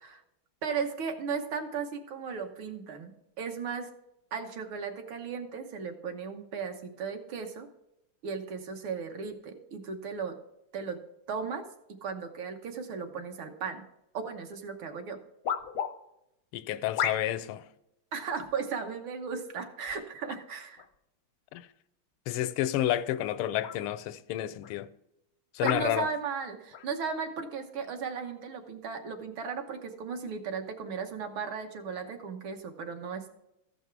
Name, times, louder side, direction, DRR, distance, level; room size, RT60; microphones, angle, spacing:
voice 1, 0.6-3.9 4.3-7.7 8.2-10.4 10.7-11.0 11.3-11.6 11.9-13.8 14.1-15.2 18.1-20.8 25.6-33.3, right 6 dB, 75° right, 1.9 m, -36 dB
sound 1, 14.5-14.6 15.4-15.9 17.0-17.5 18.3-18.6 19.6-20.0 20.8-20.9 22.8-23.0 23.6-23.8 24.6-24.7 25.6-25.9 26.7-26.9, left 8 dB, 65° left, 0.8 m, -33 dB
voice 2, 16.5-17.6 21.5-21.7 22.3-24.9 25.5-26.1, left 12 dB, 85° left, 1.4 m, -30 dB
14.0 x 5.4 x 4.6 m
omnidirectional pair, 2.3 m